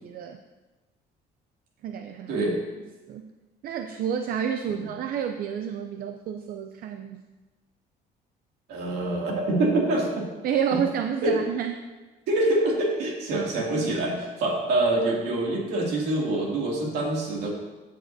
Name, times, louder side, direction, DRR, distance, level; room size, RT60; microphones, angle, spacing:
voice 1, 0.0-0.4 1.8-2.5 3.1-3.3 3.6-7.2 10.4-11.8 13.3-13.9, right 8 dB, 60° right, 6 dB, 0.5 m, -30 dB
voice 2, 2.3-2.6 4.8-4.9 8.7-10.3 11.2-11.4 12.3-17.5, right 2 dB, 75° right, -2 dB, 2.5 m, -25 dB
13.5 x 6.6 x 2.7 m, 1.2 s
cardioid pair, 110°, 17 cm